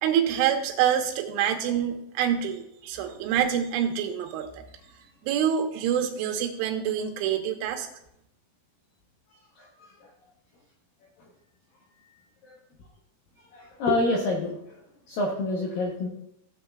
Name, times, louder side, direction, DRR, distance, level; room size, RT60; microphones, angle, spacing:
voice 1, 0.0-4.6 5.2-7.9, right 9 dB, 85° right, 4 dB, 3.4 m, -26 dB
voice 2, 9.6-9.9 12.4-12.5 13.5-14.5 15.1-16.1, left 2 dB, 75° left, -1 dB, 2.0 m, -27 dB
15.5 x 7.7 x 2.3 m, 0.78 s
omnidirectional pair, 5.4 m